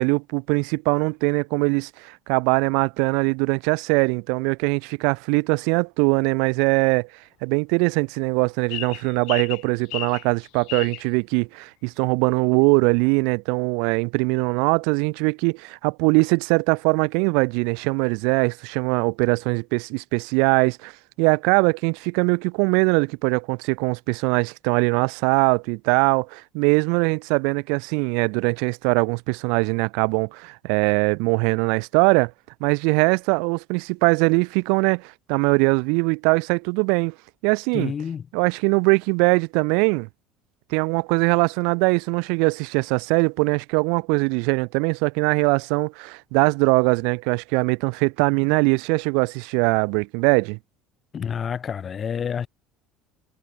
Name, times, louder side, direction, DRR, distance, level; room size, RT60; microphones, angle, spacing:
voice 1, 0.0-7.1 7.4-20.9 21.2-32.3 32.6-37.1 37.4-37.9 38.3-40.1 40.7-50.6, right 37 dB, 80° right, 0.8 m, -21 dB
sound 1, 8.7-11.0, left 23 dB, 70° left, 2.2 m, -33 dB
voice 2, 37.7-38.3 51.1-52.5, left 7 dB, 30° left, 0.9 m, -28 dB
cardioid pair, 130°, 0 cm